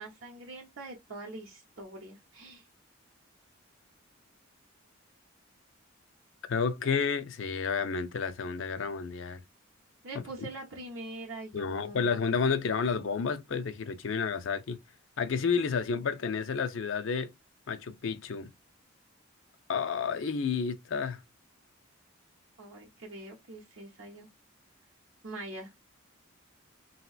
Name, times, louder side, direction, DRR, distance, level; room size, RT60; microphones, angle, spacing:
voice 1, 0.0-2.7 10.0-12.1 22.6-24.3 25.2-25.7, right 2 dB, 65° right, 0.8 m, -43 dB
voice 2, 6.5-9.4 11.5-14.8 15.2-17.3 17.7-18.5 19.7-21.2, left 5 dB, 65° left, 0.5 m, -30 dB
3.0 x 2.8 x 2.3 m
head